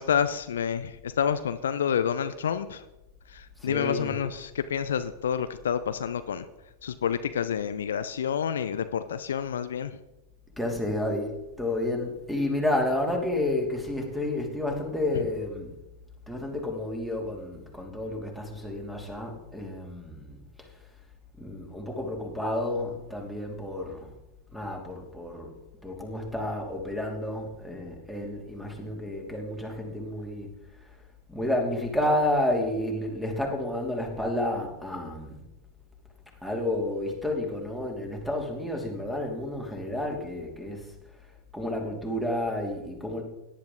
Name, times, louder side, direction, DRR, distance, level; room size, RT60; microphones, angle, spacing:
voice 1, 0.0-2.8 3.3-6.5 6.8-10.0, left 8 dB, 65° left, 11 dB, 0.6 m, -28 dB
voice 2, 3.6-4.1 10.6-15.7 16.3-20.4 21.4-24.1 24.5-25.6 25.8-30.5 31.3-35.4 36.4-40.9 41.5-43.2, left 1 dB, ahead, 1 dB, 2.9 m, -30 dB
17.5 x 10.5 x 3.9 m, 0.96 s
figure-of-eight pair, 90°, 0 cm